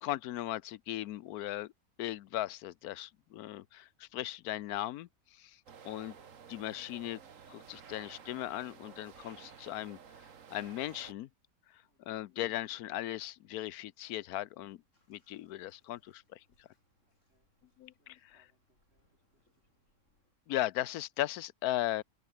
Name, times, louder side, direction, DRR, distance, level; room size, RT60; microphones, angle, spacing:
voice 1, 0.0-1.7 2.0-5.6 5.8-6.2 6.5-7.2 7.5-10.0 10.5-11.3 12.1-14.8 15.1-16.7 17.8-18.4 20.5-22.0, left 14 dB, 90° left, 1.1 m, -37 dB
sound 1, 5.7-11.1, right 7 dB, 60° right, 1.7 m, -53 dB
voice 2, 11.8-12.2 17.0-19.9, right 2 dB, 45° right, 4.4 m, -78 dB
Bathtub (filling or washing), 14.9-20.3, left 1 dB, 55° left, 7.5 m, -76 dB
open air
omnidirectional pair, 1.5 m